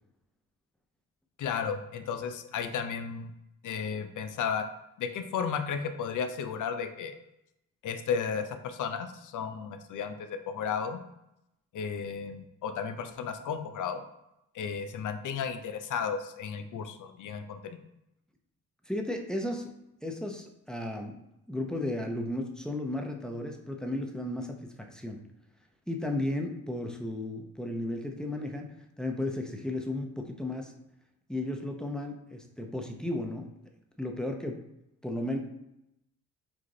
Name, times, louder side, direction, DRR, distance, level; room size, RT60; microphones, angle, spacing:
voice 1, 1.4-3.3 3.6-4.7 5.0-7.2 7.8-11.0 11.7-14.0 14.5-17.8, left 6 dB, 60° left, 8 dB, 0.6 m, -34 dB
voice 2, 18.9-19.7 20.0-21.2 21.5-25.2 25.9-28.7 29.0-30.7 31.3-33.6 34.0-34.6 35.0-35.4, left 1 dB, ahead, 2 dB, 0.7 m, -34 dB
4.8 x 2.5 x 3.8 m, 0.85 s
supercardioid pair, 65°, 34 cm